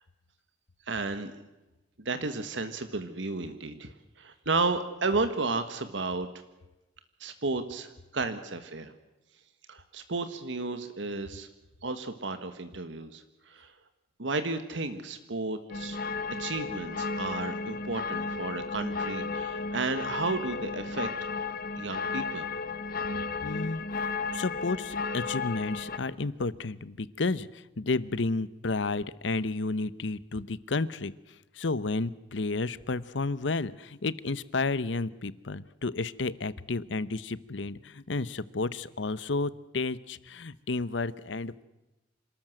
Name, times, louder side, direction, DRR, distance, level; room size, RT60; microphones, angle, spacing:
voice 1, 0.9-1.3 2.0-6.3 7.2-8.9 9.7-11.5 11.8-13.7 14.2-16.0 16.4-21.1 21.8-22.5, right 3 dB, 80° right, 9 dB, 1.5 m, -33 dB
sound 1, 15.7-26.0, left 4 dB, 55° left, 1.3 m, -34 dB
voice 2, 23.4-23.8 24.3-31.1 31.6-41.6, left 3 dB, 75° left, 17 dB, 0.9 m, -31 dB
27.5 x 13.5 x 7.8 m, 1.0 s
head